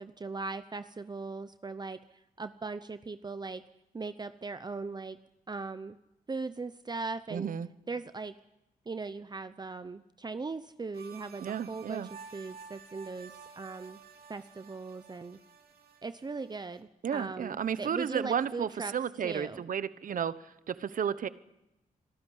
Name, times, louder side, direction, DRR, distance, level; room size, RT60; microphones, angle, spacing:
voice 1, 0.0-2.0 2.4-3.6 3.9-5.2 5.5-6.0 6.3-7.5 7.9-8.3 8.9-14.0 14.3-15.4 16.0-18.9 19.2-19.6, right 3 dB, 30° right, 11 dB, 0.8 m, -39 dB
voice 2, 7.3-7.7 11.4-12.1 17.0-20.3 20.7-21.3, right 8 dB, 65° right, 15 dB, 1.1 m, -32 dB
sound 1, 10.9-16.8, right 6 dB, 85° right, 3.0 m, -52 dB
25.5 x 13.5 x 10.0 m, 0.91 s
cardioid pair, 85°, 15 cm